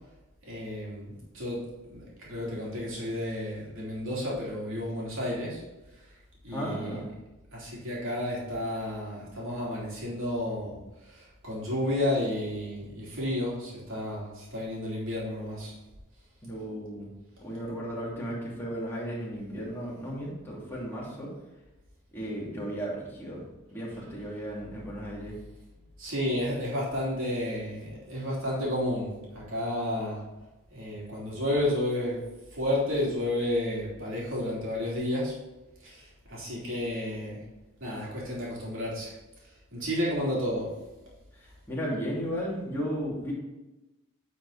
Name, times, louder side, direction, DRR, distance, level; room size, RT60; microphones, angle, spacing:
voice 1, 0.4-5.6 6.0-6.1 6.4-7.0 7.5-15.7 26.0-30.2 30.7-32.2 32.5-35.4 35.8-37.4 37.8-39.2 39.7-40.8, left 1 dB, 65° right, -5 dB, 3.3 m, -31 dB
voice 2, 6.5-7.1 16.4-17.1 17.4-21.3 22.1-23.4 23.7-25.3 41.3-43.3, equal, 10° left, -6 dB, 2.7 m, -35 dB
10.0 x 5.4 x 4.2 m, 1.1 s
head